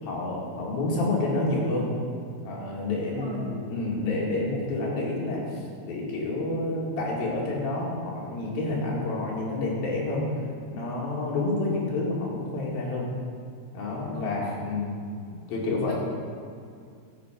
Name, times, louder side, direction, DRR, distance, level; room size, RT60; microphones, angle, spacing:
voice 1, 0.0-1.9 2.5-10.2 10.7-13.1 13.7-15.0 15.5-15.9, left 2 dB, 65° left, -4 dB, 3.9 m, -29 dB
voice 2, 3.2-3.6 14.1-14.4 15.9-16.0, left 1 dB, 35° left, -8 dB, 2.1 m, -38 dB
13.5 x 7.9 x 5.1 m, 2.2 s
omnidirectional pair, 4.5 m